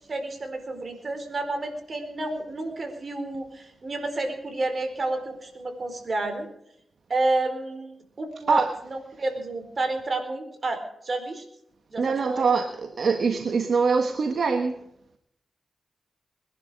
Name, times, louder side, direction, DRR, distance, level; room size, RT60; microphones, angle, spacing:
voice 1, 0.1-6.5 7.1-11.4 11.9-12.4, right 2 dB, 50° right, 4.5 m, -30 dB
voice 2, 12.0-14.8, right 5 dB, 70° right, 1.4 m, -23 dB
21.5 x 11.5 x 5.0 m
cardioid pair, 55°, 0 cm